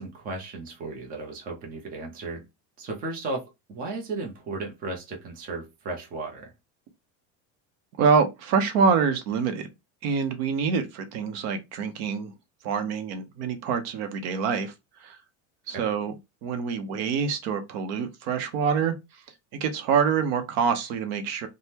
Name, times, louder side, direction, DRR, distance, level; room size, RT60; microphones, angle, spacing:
voice 1, 0.0-2.4 2.8-6.5 15.7-15.9, right 3 dB, 20° right, 0.6 m, -35 dB
voice 2, 8.0-9.7 10.0-12.3 12.6-14.7 15.0-15.2 15.7-16.1 16.4-18.9 19.5-21.5, right 6 dB, 60° right, 0.7 m, -25 dB
3.4 x 2.1 x 2.8 m
cardioid pair, 165°, 39 cm